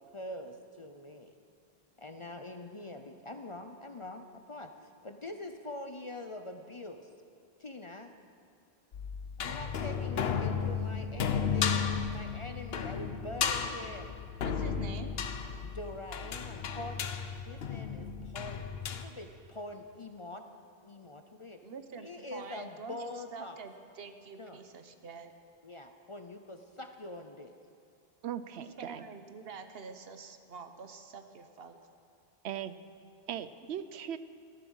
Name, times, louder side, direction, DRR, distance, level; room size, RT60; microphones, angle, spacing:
voice 1, 0.0-1.4 2.0-7.1 7.6-8.1 9.4-14.2 15.6-17.2 17.5-18.7 19.0-20.4 20.8-21.6 22.0-23.6 24.4-24.6 25.6-27.5, left 2 dB, 35° left, 6 dB, 0.6 m, -44 dB
sound 1, 8.9-19.0, left 6 dB, 70° left, 1.0 m, -34 dB
voice 2, 14.4-15.1 21.6-25.3 28.6-31.8, right 5 dB, 65° right, 8 dB, 1.1 m, -46 dB
voice 3, 28.2-29.0 32.4-32.8 33.3-34.2, right 10 dB, 85° right, 13 dB, 0.9 m, -38 dB
14.0 x 13.0 x 6.3 m, 2.4 s
omnidirectional pair, 1.1 m